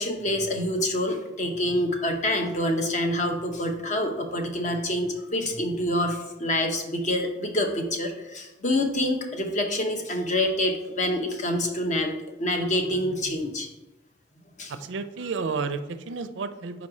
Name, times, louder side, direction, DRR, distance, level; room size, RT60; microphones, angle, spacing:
voice 1, 0.0-12.1 12.4-13.7 14.6-14.7, left 1 dB, 40° left, 4 dB, 0.8 m, -26 dB
voice 2, 14.8-16.9, right 4 dB, 90° right, 11 dB, 0.5 m, -31 dB
4.8 x 4.2 x 4.8 m, 1.0 s
head